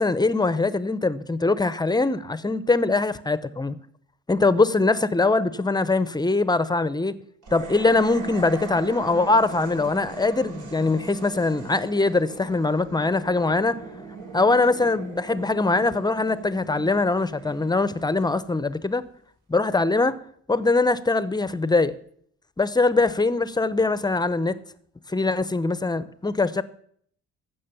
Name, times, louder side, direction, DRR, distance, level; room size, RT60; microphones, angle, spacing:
voice 1, 0.0-3.8 4.3-7.1 7.5-13.8 14.3-19.0 19.5-20.2 20.5-21.9 22.6-24.6 25.1-26.6, left 3 dB, 15° left, 0.7 m, -22 dB
sound 1, 7.4-18.8, right 3 dB, 75° right, 3.9 m, -39 dB
14.5 x 6.3 x 6.9 m
cardioid pair, 90°, 30 cm